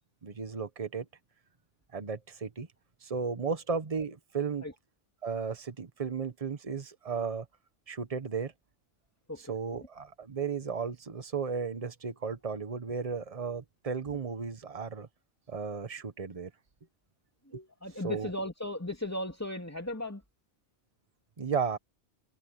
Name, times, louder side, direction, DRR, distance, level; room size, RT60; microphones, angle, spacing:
voice 1, 0.2-1.0 1.9-2.7 3.0-4.6 5.2-7.5 7.9-8.5 9.5-15.1 15.5-16.5 17.5-17.7 18.0-18.3 21.4-21.8, right 5 dB, 30° right, 1.2 m, -34 dB
voice 2, 17.8-20.2, left 1 dB, 10° left, 2.8 m, -36 dB
omnidirectional pair, 1.3 m